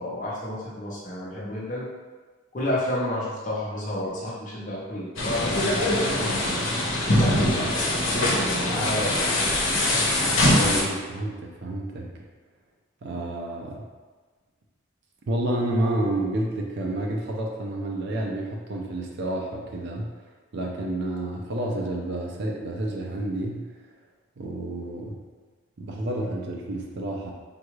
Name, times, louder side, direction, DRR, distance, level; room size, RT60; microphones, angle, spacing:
voice 1, 0.0-1.9 2.5-6.6 7.0-7.5 8.1-9.5, left 1 dB, 40° left, -7 dB, 0.7 m, -31 dB
sound 1, 5.2-10.8, left 1 dB, 75° left, 0.7 m, -23 dB
voice 2, 10.5-12.1 13.0-13.8 15.3-20.1 20.5-23.7 24.4-25.2 25.8-27.3, right 1 dB, 55° right, -1 dB, 0.4 m, -29 dB
3.7 x 2.3 x 3.0 m, 1.4 s
head